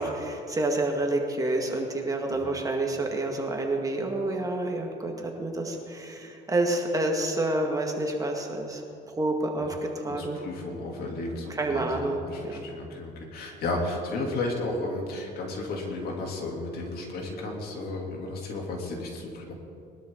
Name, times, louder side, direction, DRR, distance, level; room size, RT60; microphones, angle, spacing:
voice 1, 0.0-8.8 9.2-9.8 10.0-10.4 11.5-12.7, right 2 dB, 20° right, 1 dB, 2.0 m, -28 dB
voice 2, 10.1-19.5, left 2 dB, 65° left, 0 dB, 3.1 m, -33 dB
22.0 x 12.5 x 3.9 m, 2.6 s
cardioid pair, 110°, 17 cm